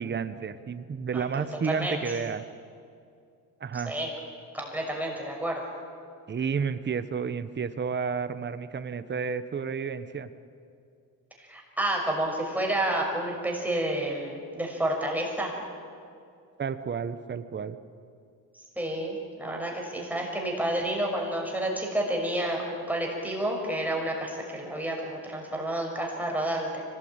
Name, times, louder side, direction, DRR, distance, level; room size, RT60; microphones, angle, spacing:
voice 1, 0.0-2.4 3.6-3.9 6.3-10.3 16.6-17.8, right 6 dB, 30° right, 11 dB, 1.1 m, -31 dB
voice 2, 1.1-2.2 3.7-4.1 4.5-5.6 11.4-15.5 18.8-26.8, right 1 dB, 5° right, -1 dB, 6.0 m, -30 dB
25.0 x 19.0 x 8.9 m, 2.4 s
cardioid pair, 105°, 38 cm